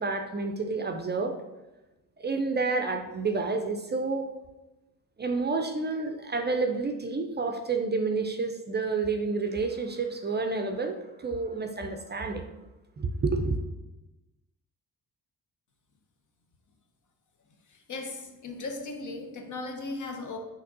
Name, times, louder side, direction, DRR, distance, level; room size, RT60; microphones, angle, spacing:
voice 1, 0.0-1.4 2.2-4.3 5.2-12.4 13.0-13.6, right 3 dB, 30° right, 5 dB, 0.4 m, -29 dB
voice 2, 17.7-20.4, left 3 dB, 55° left, 4 dB, 0.8 m, -37 dB
5.7 x 3.0 x 2.6 m, 1.0 s
cardioid pair, 60°, 37 cm